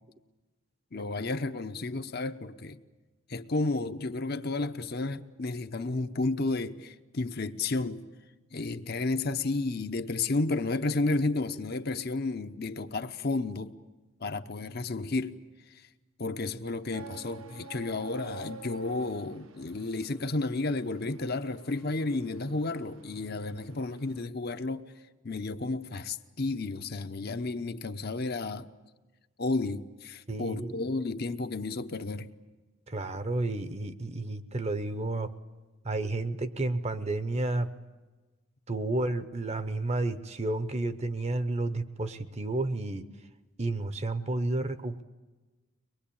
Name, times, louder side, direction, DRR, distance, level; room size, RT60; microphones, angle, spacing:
voice 1, 0.9-2.8 3.3-8.1 8.5-13.8 14.2-15.4 16.2-24.8 25.2-28.7 29.4-32.3, left 3 dB, 45° left, 0.8 m, -32 dB
sound 1, 16.9-24.3, right 3 dB, 75° right, 1.2 m, -48 dB
voice 2, 30.3-30.8 32.9-35.3 35.8-37.7 38.7-43.0 43.6-45.0, right 2 dB, 30° right, 0.8 m, -31 dB
23.5 x 21.5 x 8.7 m
head